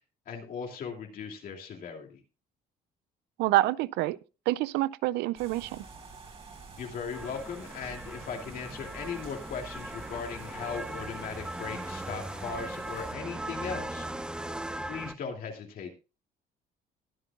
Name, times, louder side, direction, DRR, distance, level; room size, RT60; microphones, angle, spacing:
voice 1, 0.3-2.2 6.8-14.1 14.9-15.9, left 6 dB, 60° left, 2.7 m, -38 dB
voice 2, 3.4-4.2 4.5-5.8, right 17 dB, 90° right, 0.5 m, -27 dB
sound 1, 5.4-13.1, right 4 dB, 35° right, 4.1 m, -48 dB
sound 2, 7.1-15.1, right 1 dB, 5° right, 0.6 m, -39 dB
21.0 x 7.8 x 2.4 m
cardioid pair, 110°, 17 cm